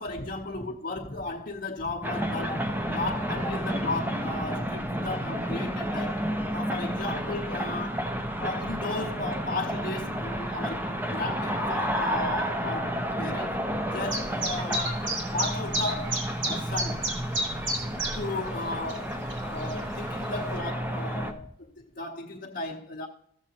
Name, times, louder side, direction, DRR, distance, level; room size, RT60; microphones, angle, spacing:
voice 1, 0.0-6.2 6.5-8.1 8.4-17.1 18.1-23.1, left 2 dB, 45° left, 0.9 m, -35 dB
sound 1, 2.0-21.3, equal, 10° right, 0.6 m, -31 dB
Chirp tweet, 14.1-20.6, right 1 dB, 75° right, 2.2 m, -33 dB
15.0 x 7.3 x 2.9 m
head